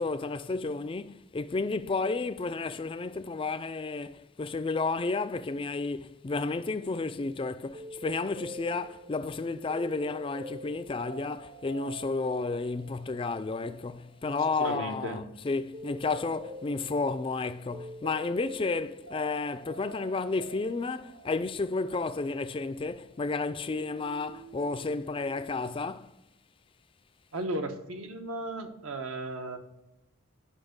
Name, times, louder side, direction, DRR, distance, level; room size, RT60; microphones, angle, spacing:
voice 1, 0.0-26.1, left 3 dB, 25° left, 0.3 m, -32 dB
sound 1, 7.7-23.4 23.7-25.6, right 1 dB, 50° right, 0.8 m, -47 dB
voice 2, 14.6-15.2 27.3-29.6, right 1 dB, 75° right, 1.0 m, -35 dB
10.0 x 5.7 x 5.2 m
head